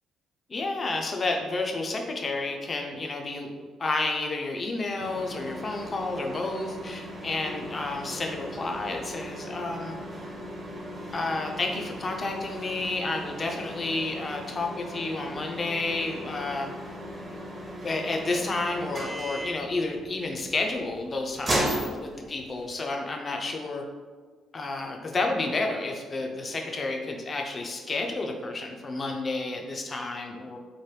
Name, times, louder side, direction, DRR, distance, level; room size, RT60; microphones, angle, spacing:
voice 1, 0.5-10.0 11.1-16.7 17.8-23.8 24.5-30.6, left 3 dB, 35° left, 2 dB, 0.4 m, -31 dB
sound 1, 5.0-22.7, equal, 30° right, 0.7 m, -37 dB
3.1 x 2.1 x 3.1 m, 1.5 s
cardioid pair, 90°, 0 cm